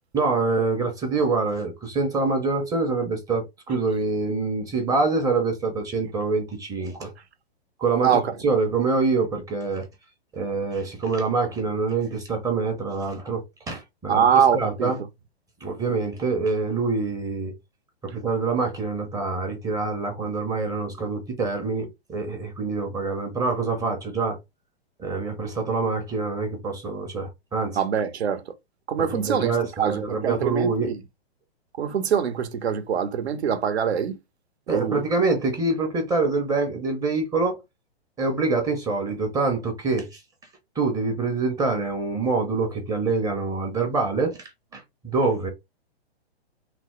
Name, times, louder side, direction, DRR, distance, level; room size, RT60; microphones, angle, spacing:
voice 1, 0.1-7.1 7.8-9.9 10.3-14.2 14.5-15.0 15.6-17.5 18.0-24.4 25.0-27.8 29.1-30.9 34.7-37.6 38.2-40.2 40.8-45.5, right 3 dB, 10° right, 0.6 m, -25 dB
voice 2, 14.1-15.0 27.8-28.5 28.9-31.0 31.8-34.2 34.7-35.0, right 8 dB, 80° right, 0.8 m, -24 dB
3.3 x 2.0 x 3.0 m
hypercardioid pair, 130°, 32 cm